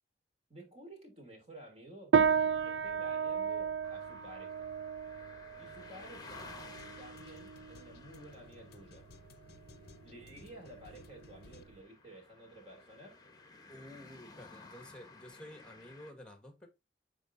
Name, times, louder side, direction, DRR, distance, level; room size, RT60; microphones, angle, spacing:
voice 1, 0.5-2.2 2.6-4.7 5.6-6.5 7.0-9.1 10.0-13.2, right 1 dB, 35° right, 2.9 m, -53 dB
sound 1, 2.1-11.8, right 7 dB, 80° right, 0.4 m, -34 dB
sound 2, 3.8-16.1, left 3 dB, 20° left, 1.0 m, -55 dB
sound 3, 5.4-11.6, left 3 dB, 60° left, 0.6 m, -58 dB
voice 2, 13.7-16.7, left 1 dB, 5° left, 1.6 m, -51 dB
10.0 x 3.8 x 2.6 m
head